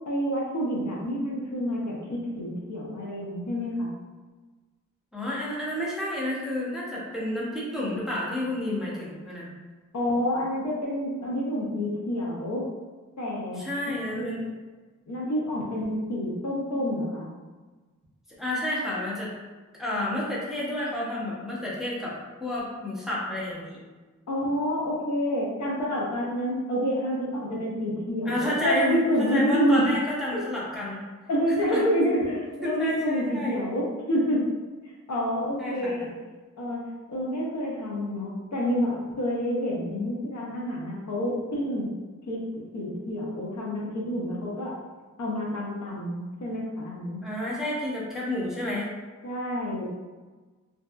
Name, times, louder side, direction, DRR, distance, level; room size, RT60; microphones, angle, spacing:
voice 1, 0.1-3.9 9.9-12.7 13.2-13.6 14.1-14.5 15.1-17.3 24.3-29.9 30.3-30.4 31.3-34.5 35.1-36.1 36.6-36.8 37.1-41.9 42.3-42.4 42.7-44.8 45.2-47.2 49.2-49.9, equal, 65° left, -4 dB, 0.6 m, -28 dB
voice 2, 5.1-9.5 13.5-14.4 18.4-19.3 19.8-23.8 28.2-31.0 31.7-31.8 32.6-33.6 35.6-35.9 39.9-40.1 47.2-48.9, left 1 dB, ahead, -7 dB, 0.7 m, -30 dB
2.7 x 2.2 x 2.2 m, 1.3 s
wide cardioid pair, 90°, 31 cm